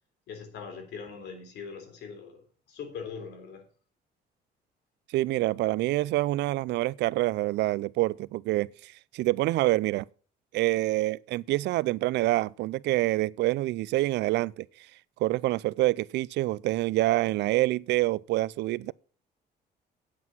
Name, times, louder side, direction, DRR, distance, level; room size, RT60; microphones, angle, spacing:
voice 1, 0.3-2.4 2.7-3.6, left 6 dB, 80° left, 3.5 m, -41 dB
voice 2, 5.1-10.1 10.5-14.6 15.2-18.9, right 17 dB, 85° right, 0.4 m, -26 dB
9.5 x 8.3 x 6.0 m
cardioid pair, 125°, 17 cm